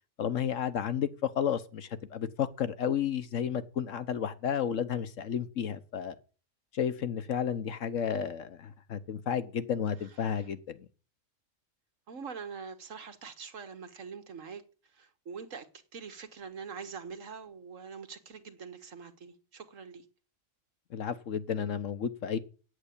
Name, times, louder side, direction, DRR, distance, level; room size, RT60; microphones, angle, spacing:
voice 1, 0.2-6.2 6.7-10.9 20.9-22.4, left 8 dB, 75° left, 1.3 m, -32 dB
voice 2, 12.1-14.6 15.0-15.7 15.9-20.0, right 5 dB, 75° right, 1.8 m, -44 dB
9.2 x 8.2 x 8.4 m
omnidirectional pair, 1.4 m